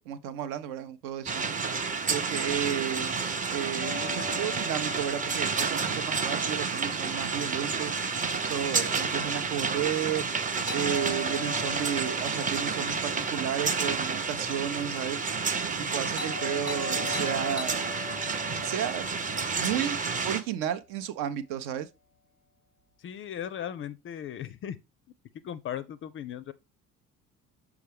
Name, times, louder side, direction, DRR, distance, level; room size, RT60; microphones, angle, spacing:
voice 1, 0.0-1.5 2.1-7.9 8.4-10.2 10.7-15.2 15.8-17.8 18.6-19.1 19.5-21.9, right 10 dB, 55° right, 0.7 m, -33 dB
sound 1, 1.3-20.4, right 4 dB, 20° right, 0.7 m, -30 dB
Doorbell, 3.8-7.8 10.7-14.9 16.1-20.6, left 4 dB, 80° right, 1.4 m, -41 dB
voice 2, 23.0-24.8 25.3-26.5, left 9 dB, 30° left, 0.4 m, -37 dB
6.4 x 4.7 x 3.4 m
figure-of-eight pair, 55°, 41 cm